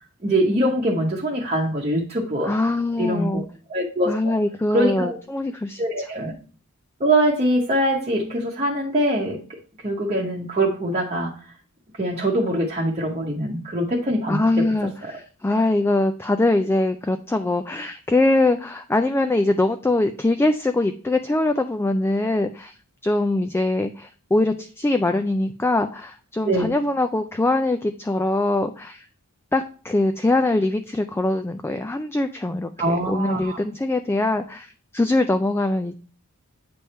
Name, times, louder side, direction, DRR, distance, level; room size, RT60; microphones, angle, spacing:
voice 1, 0.2-2.5 3.0-3.4 3.7-4.3 4.7-5.2 5.8-6.3 7.0-9.4 9.8-11.3 12.0-14.4 15.0-15.1 26.4-26.7 32.8-33.6, right 1 dB, 30° right, -3 dB, 1.0 m, -23 dB
voice 2, 2.4-3.4 4.1-5.8 14.3-22.7 23.0-29.1 29.5-36.0, left 2 dB, 10° left, 8 dB, 0.3 m, -22 dB
8.5 x 3.5 x 4.2 m, 0.41 s
head